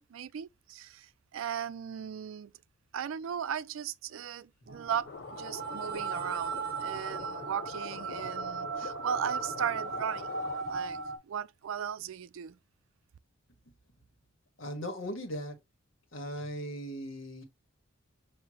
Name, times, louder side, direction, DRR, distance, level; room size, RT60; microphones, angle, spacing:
voice 1, 0.0-2.5 2.9-10.4 10.7-12.6, right 8 dB, 75° right, 0.4 m, -37 dB
sound 1, 4.7-11.2, right 5 dB, 45° right, 1.2 m, -37 dB
sound 2, 5.1-10.6, left 6 dB, 50° left, 0.3 m, -44 dB
voice 2, 14.6-15.6 16.1-17.4, equal, 70° left, 1.5 m, -38 dB
6.3 x 2.8 x 2.9 m
head